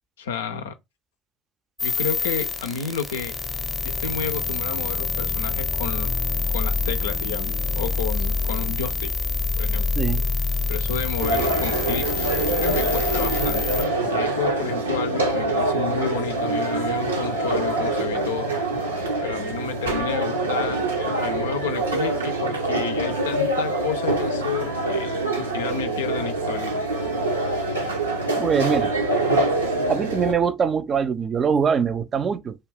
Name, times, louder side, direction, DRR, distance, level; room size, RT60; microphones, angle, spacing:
voice 1, 0.2-0.7 1.8-3.4 3.8-6.2 6.5-9.1 9.6-9.9 10.7-12.1 12.6-13.6 14.1-18.5 19.2-26.7, left 6 dB, 80° left, 0.4 m, -31 dB
sound 1, 1.8-13.8, left 4 dB, 5° left, 0.7 m, -26 dB
sound 2, 11.2-30.3, right 2 dB, 85° right, 0.6 m, -25 dB
voice 2, 28.4-28.9 29.9-32.6, right 6 dB, 40° right, 0.4 m, -23 dB
2.4 x 2.3 x 3.4 m
figure-of-eight pair, 60°, 0 cm